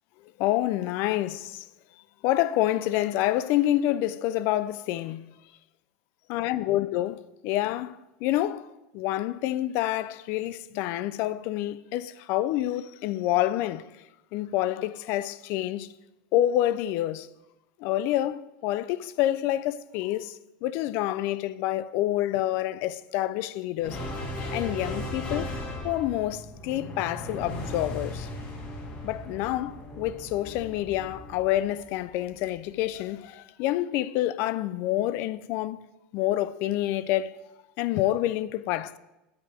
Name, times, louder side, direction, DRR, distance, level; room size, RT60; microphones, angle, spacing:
voice 1, 0.4-1.7 2.2-5.3 6.3-8.7 8.9-13.8 14.3-15.9 16.3-17.3 17.8-20.4 20.6-24.0 24.5-25.6 25.8-28.3 29.0-35.9 36.1-37.3 37.8-39.0, left 14 dB, 60° left, 0.4 m, -27 dB
sound 1, 23.8-32.4, left 1 dB, 35° left, 2.0 m, -37 dB
8.2 x 6.9 x 4.9 m
supercardioid pair, 125°, 5 cm